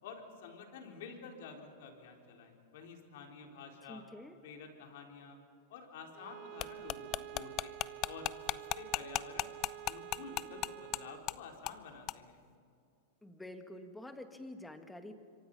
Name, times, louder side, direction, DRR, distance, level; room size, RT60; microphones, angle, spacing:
voice 1, 0.0-4.0 4.4-5.4 5.7-9.5 9.8-12.4, left 5 dB, 65° left, 2 dB, 4.3 m, -50 dB
voice 2, 3.9-4.4 13.2-15.1, left 1 dB, 5° left, 7 dB, 2.0 m, -48 dB
Bowed string instrument, 6.1-11.3, right 16 dB, 40° right, 0.7 m, -49 dB
sound 1, 6.6-11.0 11.3-11.4 11.7-11.8 12.1-12.2, left 16 dB, 40° left, 0.6 m, -35 dB
26.5 x 24.5 x 5.6 m, 2.5 s
hypercardioid pair, 130°, 0 cm